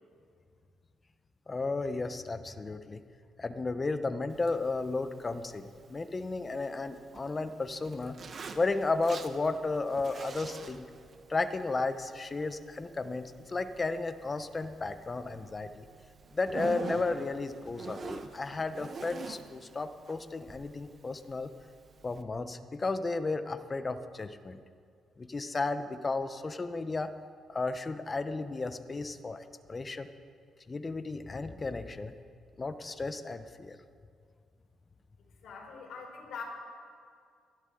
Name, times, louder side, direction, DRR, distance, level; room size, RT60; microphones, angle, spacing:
voice 1, 1.5-3.0 3.4-8.2 8.6-10.9 11.3-15.9 16.3-21.5 22.0-24.6 25.2-27.1 27.5-30.1 30.7-32.1 32.6-33.8, left 3 dB, 30° left, 10 dB, 0.8 m, -33 dB
Zipper (clothing), 4.3-22.2, right 5 dB, 45° right, 0.9 m, -47 dB
voice 2, 35.4-36.4, left 5 dB, 70° left, -2 dB, 4.5 m, -43 dB
23.0 x 12.0 x 3.8 m, 2.2 s
cardioid pair, 90°, 0 cm